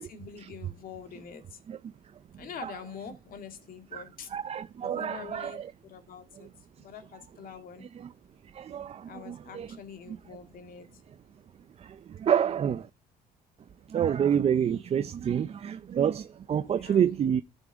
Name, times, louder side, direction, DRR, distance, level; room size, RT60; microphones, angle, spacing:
voice 1, 0.1-1.4 2.4-4.3 4.8-6.5 6.8-7.9 9.1-10.9 16.6-17.1, left 7 dB, 55° left, 2.1 m, -45 dB
voice 2, 4.3-5.7 8.5-9.7 10.1-10.2 11.8-12.9 13.9-17.4, right 8 dB, 35° right, 0.5 m, -28 dB
13.5 x 7.0 x 3.5 m
cardioid pair, 110°, 17 cm